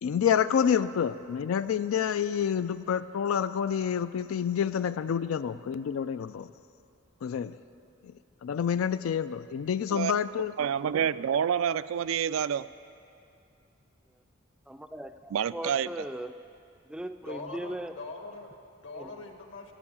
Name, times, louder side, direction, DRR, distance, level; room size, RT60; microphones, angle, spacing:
voice 1, 0.0-6.5 7.2-7.6 8.4-10.5, left 8 dB, 90° left, 13 dB, 0.4 m, -28 dB
voice 2, 10.6-12.6 15.3-15.9, right 8 dB, 90° right, 15 dB, 0.4 m, -28 dB
voice 3, 14.7-16.3 16.9-18.0 18.9-19.1, right 1 dB, 5° right, 8 dB, 0.3 m, -38 dB
voice 4, 17.2-19.7, left 3 dB, 70° left, 4 dB, 1.4 m, -42 dB
13.5 x 8.2 x 8.6 m, 2.6 s
head